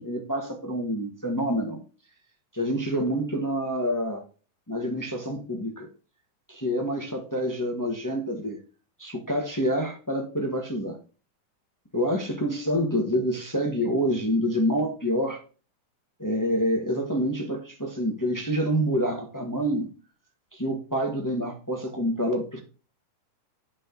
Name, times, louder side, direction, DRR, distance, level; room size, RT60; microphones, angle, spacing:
voice 1, 0.0-1.8 2.5-4.2 4.7-5.9 6.5-8.6 9.0-11.0 11.9-15.4 16.2-19.9 20.5-22.6, equal, 15° left, 0.6 m, -27 dB
9.6 x 6.3 x 3.9 m
omnidirectional pair, 3.5 m